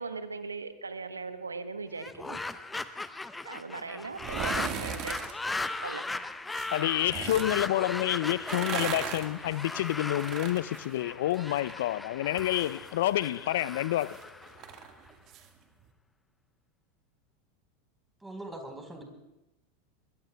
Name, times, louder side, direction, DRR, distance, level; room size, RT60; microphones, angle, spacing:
voice 1, 0.0-2.4 3.4-5.4 5.8-6.0, right 4 dB, 85° right, 1.1 m, -39 dB
sound 1, 1.9-15.1, left 2 dB, 10° left, 0.7 m, -38 dB
sound 2, 4.1-5.3 6.5-7.5 8.3-11.8 12.1-15.5 15.8-15.9, right 9 dB, 45° right, 1.7 m, -39 dB
voice 2, 6.7-14.2, left 14 dB, 65° left, 0.5 m, -28 dB
voice 3, 18.2-19.0, right 1 dB, 10° right, 4.2 m, -41 dB
23.0 x 22.0 x 2.3 m
figure-of-eight pair, 85°, 0 cm